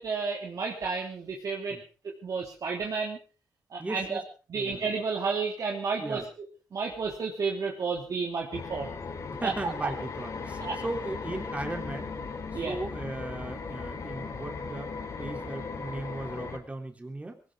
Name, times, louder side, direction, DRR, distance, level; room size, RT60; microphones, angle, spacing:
voice 1, 0.0-1.8 2.2-3.2 3.7-4.2 4.5-6.2 6.7-8.9 9.4-9.5 10.6-10.8 12.5-12.7, right 4 dB, 60° right, -1 dB, 3.2 m, -31 dB
voice 2, 3.8-4.2 4.5-4.8 6.0-6.3 9.3-12.1 12.5-17.4, right 2 dB, 20° right, 3 dB, 3.4 m, -37 dB
sound 1, 8.5-16.6, left 4 dB, 60° left, 4.1 m, -37 dB
20.5 x 18.5 x 3.8 m, 0.36 s
cardioid pair, 95°, 7 cm